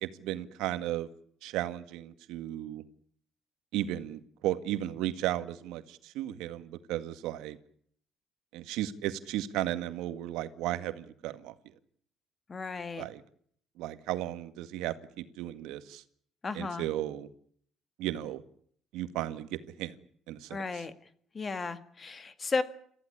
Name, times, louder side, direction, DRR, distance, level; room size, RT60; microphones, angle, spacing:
voice 1, 0.0-1.1 1.4-2.8 3.7-7.6 8.5-11.5 13.0-13.2 13.8-16.0 16.5-17.3 18.0-18.4 18.9-20.0 20.3-20.8, right 13 dB, 85° right, 11 dB, 1.9 m, -35 dB
voice 2, 12.5-13.1 16.4-16.9 20.5-20.9 21.3-22.6, left 4 dB, 25° left, 12 dB, 2.0 m, -34 dB
28.5 x 15.0 x 10.0 m, 0.63 s
cardioid pair, 135°, 0 cm